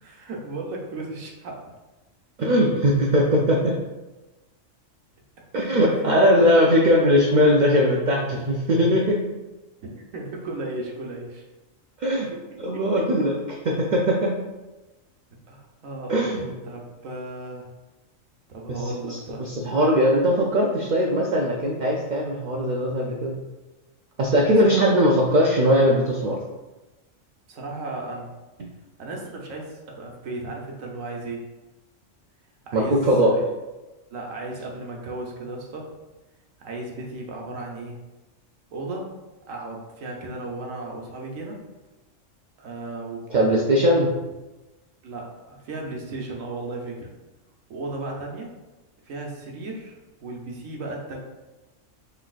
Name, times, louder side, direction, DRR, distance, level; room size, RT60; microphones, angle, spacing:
voice 1, 0.0-1.7 5.9-6.4 9.9-11.4 12.7-12.8 15.5-17.7 18.5-19.5 24.6-25.0 27.5-28.3 29.0-31.4 32.7-33.4 34.1-35.9 36.6-38.0 38.7-39.1 39.5-41.6 42.6-43.6 43.9-44.1 45.0-47.1 47.7-48.5 49.1-51.2, right 2 dB, 85° right, 0 dB, 1.2 m, -35 dB
voice 2, 2.4-3.7 5.5-9.2 12.0-12.3 12.6-13.4 13.7-14.4 16.1-16.5 18.7-23.4 24.2-26.4 32.7-33.4 43.3-44.1, equal, 55° right, -1 dB, 0.5 m, -20 dB
5.9 x 3.4 x 2.4 m, 1.1 s
omnidirectional pair, 1.3 m